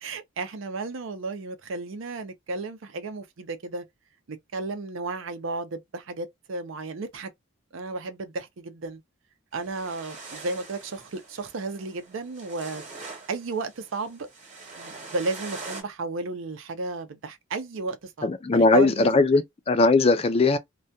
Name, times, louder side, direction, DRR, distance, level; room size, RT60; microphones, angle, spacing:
voice 1, 0.0-3.9 4.3-7.3 7.7-9.0 9.5-12.8 13.3-14.3 14.7-19.4, right 3 dB, 65° right, 0.5 m, -33 dB
sound 1, 9.5-15.8, right 3 dB, 35° right, 1.0 m, -43 dB
voice 2, 18.2-20.6, left 3 dB, 30° left, 0.4 m, -20 dB
2.3 x 2.2 x 2.6 m
head